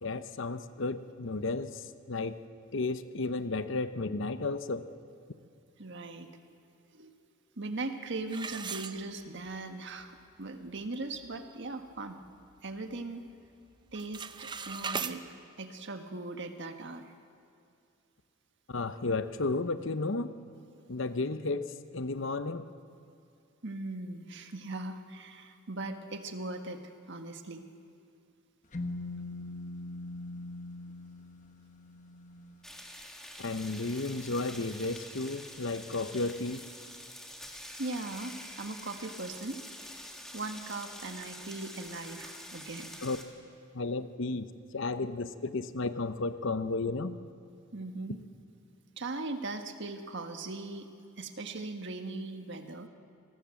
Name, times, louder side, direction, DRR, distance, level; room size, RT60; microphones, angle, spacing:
voice 1, 0.0-1.7 2.1-2.3 2.7-4.8 18.7-20.3 20.9-21.7 21.9-22.7 33.4-36.6 43.0-43.2 43.7-44.5 44.7-47.2, left 3 dB, 60° left, 11 dB, 0.9 m, -33 dB
voice 2, 5.8-6.3 6.9-7.1 7.6-12.2 12.6-13.2 13.9-15.2 15.6-17.1 23.6-27.6 37.8-39.6 40.3-42.9 47.7-48.2 49.0-50.9 51.2-52.9, right 2 dB, 55° right, 6 dB, 1.5 m, -39 dB
Sword being taken from scabbard, 8.3-9.6 10.0-10.1 10.7-10.8 11.2-11.5 11.9-13.0 13.3-13.6 13.9-15.2, right 5 dB, 20° right, 0.7 m, -39 dB
sound 1, 28.7-32.6, left 2 dB, 35° left, 1.2 m, -41 dB
sound 2, 32.6-43.2, equal, ahead, 2.2 m, -46 dB
28.0 x 19.0 x 7.7 m, 2.5 s
head